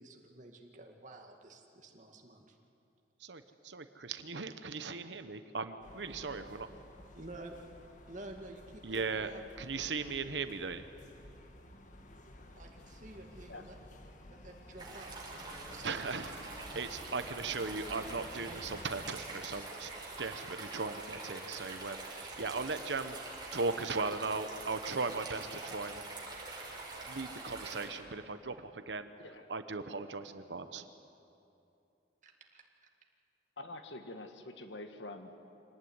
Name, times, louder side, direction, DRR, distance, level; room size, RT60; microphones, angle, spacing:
voice 1, 0.0-2.6 7.1-7.6 8.1-9.4 12.6-13.7 14.3-16.2 32.2-32.6, right 2 dB, 45° right, 2 dB, 2.1 m, -50 dB
voice 2, 3.2-6.7 8.8-9.3 9.6-10.9 15.8-19.9 20.2-23.2 23.5-26.0 27.0-29.1 29.5-30.9, right 4 dB, 80° right, 10 dB, 1.0 m, -38 dB
sound 1, 5.8-18.9, left 1 dB, 45° left, 1.7 m, -53 dB
sound 2, 14.8-27.9, right 3 dB, 25° right, 5.1 m, -45 dB
voice 3, 33.6-35.4, left 2 dB, 90° left, 7 dB, 1.7 m, -46 dB
25.0 x 18.5 x 9.7 m, 2.7 s
head